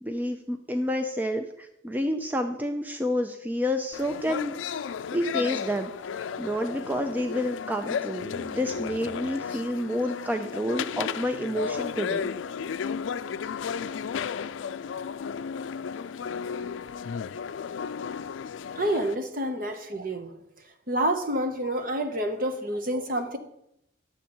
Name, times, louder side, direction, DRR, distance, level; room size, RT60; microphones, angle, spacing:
voice 1, 0.0-4.6 4.8-12.3, equal, 10° right, 6 dB, 0.4 m, -29 dB
sound 1, 3.9-19.2, left 6 dB, 85° left, 0.4 m, -34 dB
voice 2, 18.8-20.3 20.9-23.4, right 1 dB, 50° right, 7 dB, 1.0 m, -28 dB
10.5 x 7.2 x 4.4 m, 0.80 s
head